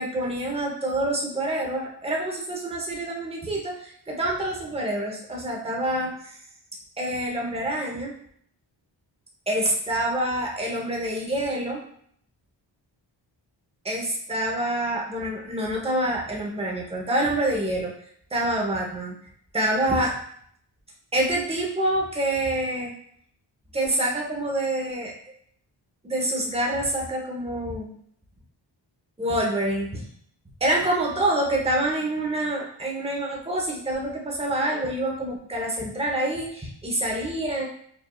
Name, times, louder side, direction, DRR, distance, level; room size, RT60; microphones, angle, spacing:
voice 1, 0.0-6.4 7.0-8.1 9.5-11.8 13.8-17.9 18.3-19.1 19.5-20.1 21.1-22.9 23.7-25.1 26.0-27.9 29.2-30.0 30.6-37.7, right 1 dB, 15° right, -1 dB, 0.9 m, -26 dB
5.0 x 2.6 x 2.3 m, 0.65 s
cardioid pair, 85°, 46 cm